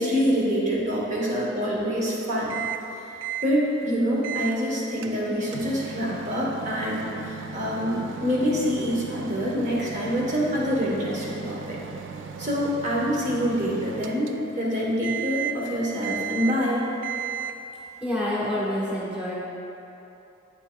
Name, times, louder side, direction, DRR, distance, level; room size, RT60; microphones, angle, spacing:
voice 1, 0.0-2.5 3.4-11.8 12.4-16.8, equal, 40° right, -4 dB, 1.1 m, -26 dB
Microwave oven, 2.5-2.9 3.2-3.5 4.2-4.6 5.0-14.7 15.0-15.7 16.0-16.7 17.0-17.7, right 8 dB, 70° right, 0.3 m, -36 dB
voice 2, 18.0-19.5, left 1 dB, 5° right, -8 dB, 1.3 m, -28 dB
8.4 x 5.4 x 2.3 m, 3.0 s
head